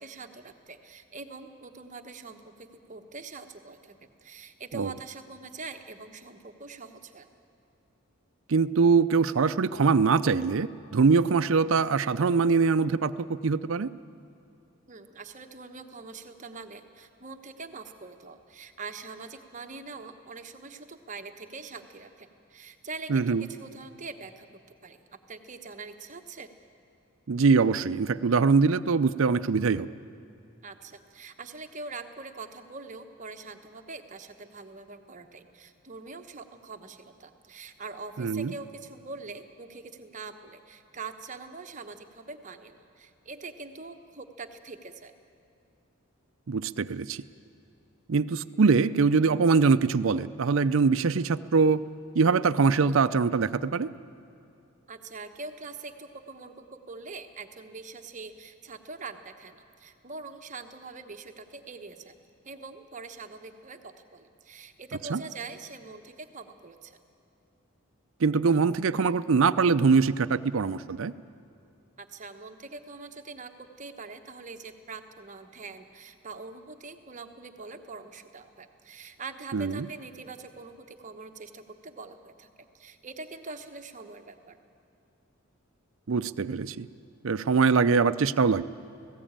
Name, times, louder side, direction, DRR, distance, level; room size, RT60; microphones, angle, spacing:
voice 1, 0.0-7.3 14.9-25.0 25.3-26.5 30.6-45.1 54.9-62.1 62.4-67.0 72.0-84.6, right 3 dB, 35° right, 6 dB, 1.0 m, -43 dB
voice 2, 8.5-13.9 23.1-23.4 27.3-29.9 38.2-38.5 46.5-47.2 48.1-51.8 52.1-53.9 65.1-65.2 68.2-71.1 79.5-79.9 86.1-86.9 87.2-88.6, right 4 dB, 60° right, 13 dB, 0.5 m, -23 dB
19.0 x 16.0 x 8.8 m, 2.7 s
head